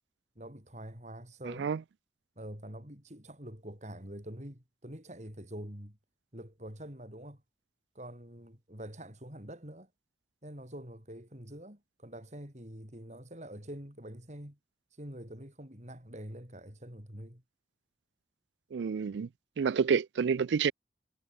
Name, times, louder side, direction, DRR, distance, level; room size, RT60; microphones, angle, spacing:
voice 1, 0.4-1.7 2.4-6.0 6.3-7.4 7.9-9.9 10.4-14.6 14.9-17.4, right 1 dB, 40° right, 6.1 m, -45 dB
voice 2, 18.7-19.3 19.6-20.7, right 6 dB, 85° right, 0.4 m, -28 dB
head